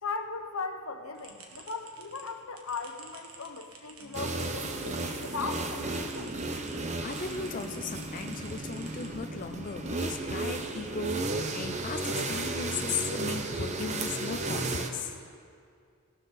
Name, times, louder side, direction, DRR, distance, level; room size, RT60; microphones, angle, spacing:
voice 1, 0.0-6.4, left 4 dB, 80° left, 7 dB, 1.0 m, -38 dB
sound 1, 1.1-6.8 7.1-9.5, right 4 dB, 85° right, 1.6 m, -52 dB
sound 2, 4.0-9.0, equal, 50° right, 1.4 m, -53 dB
sound 3, 4.1-14.9, right 2 dB, 35° right, 0.8 m, -34 dB
voice 2, 7.0-15.2, left 5 dB, 40° left, 6 dB, 0.5 m, -37 dB
17.0 x 12.0 x 4.1 m, 2.2 s
head